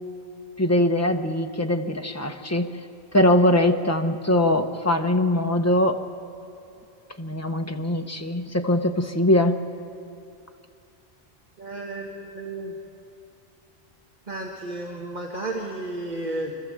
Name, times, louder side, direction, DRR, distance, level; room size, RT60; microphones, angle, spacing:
voice 1, 0.6-2.7 3.1-6.0 7.2-9.6, left 1 dB, 15° left, 5 dB, 0.8 m, -22 dB
voice 2, 11.6-12.8 14.3-16.6, right 2 dB, 45° right, -1 dB, 1.6 m, -32 dB
27.0 x 14.0 x 7.5 m, 2.6 s
omnidirectional pair, 1.1 m